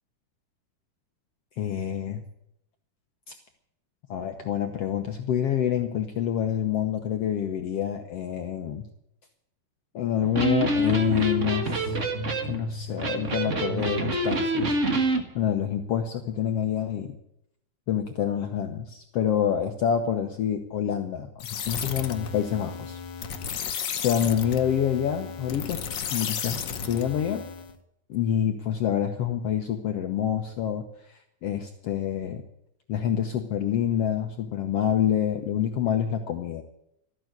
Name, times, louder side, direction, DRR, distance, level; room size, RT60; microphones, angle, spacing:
voice 1, 1.6-2.2 4.1-8.9 9.9-12.0 12.4-14.8 15.4-17.2 17.9-23.0 24.0-25.8 26.1-27.4 28.1-32.4 32.9-36.6, left 9 dB, 65° left, 6 dB, 1.7 m, -27 dB
Electric guitar, 10.2-15.2, right 1 dB, 40° right, 1.1 m, -26 dB
sound 1, 21.4-27.7, left 7 dB, 80° left, 1.0 m, -34 dB
13.5 x 9.1 x 9.6 m, 0.76 s
omnidirectional pair, 3.7 m